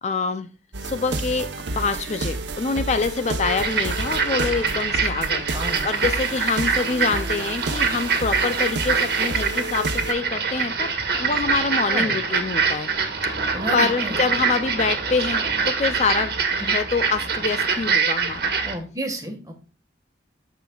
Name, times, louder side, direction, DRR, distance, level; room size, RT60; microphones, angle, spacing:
voice 1, 0.0-0.5 0.8-1.5 1.8-10.9 11.2-12.9 13.4-18.5, left 4 dB, 40° left, 10 dB, 0.4 m, -26 dB
sound 1, 0.7-10.1, right 2 dB, 85° right, 0.9 m, -31 dB
sound 2, 3.4-18.8, right 5 dB, 60° right, 1.4 m, -24 dB
voice 2, 5.5-5.9 11.9-12.2 13.5-14.1 18.6-19.5, right 1 dB, 20° right, 3 dB, 1.5 m, -31 dB
14.0 x 5.0 x 2.3 m, 0.36 s
head